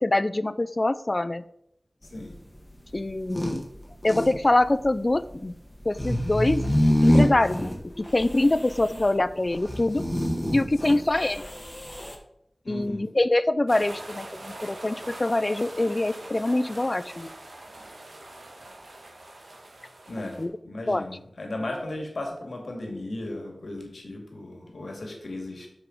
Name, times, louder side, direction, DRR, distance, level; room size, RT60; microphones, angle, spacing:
voice 1, 0.0-1.4 2.9-3.7 4.0-5.5 5.8-6.7 7.0-10.0 10.5-11.5 12.7-17.3 20.4-20.5 20.9-21.1, left 2 dB, 40° left, 15 dB, 0.4 m, -24 dB
sound 1, 2.0-12.2, equal, 20° left, 1.6 m, -27 dB
voice 2, 12.6-13.0 20.1-20.4 20.6-25.7, left 1 dB, 85° left, 2 dB, 2.2 m, -35 dB
sound 2, 13.7-20.4, right 1 dB, 85° right, 1.7 m, -43 dB
7.0 x 6.7 x 5.2 m, 0.75 s
wide cardioid pair, 65°, 0 cm